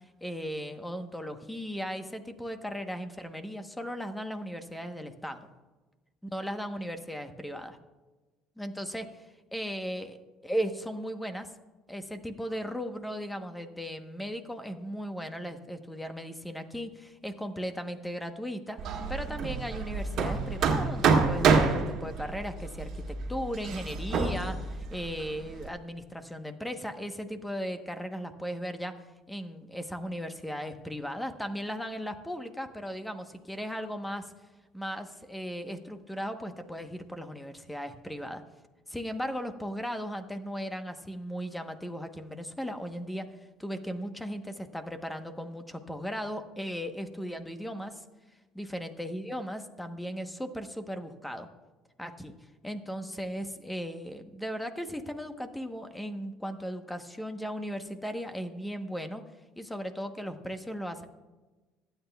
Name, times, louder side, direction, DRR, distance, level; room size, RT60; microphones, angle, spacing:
voice 1, 0.2-5.5 6.3-7.8 8.6-9.0 9.5-10.2 10.4-11.5 11.9-29.0 29.3-34.3 34.7-38.4 38.9-43.3 43.6-48.0 48.6-51.5 52.0-52.3 52.6-59.2 59.6-61.1, equal, 5° left, 8 dB, 1.0 m, -37 dB
Hammer, 18.8-25.7, right 5 dB, 60° right, 1.7 m, -28 dB
25.5 x 9.0 x 2.3 m, 1.2 s
supercardioid pair, 90°, 0 cm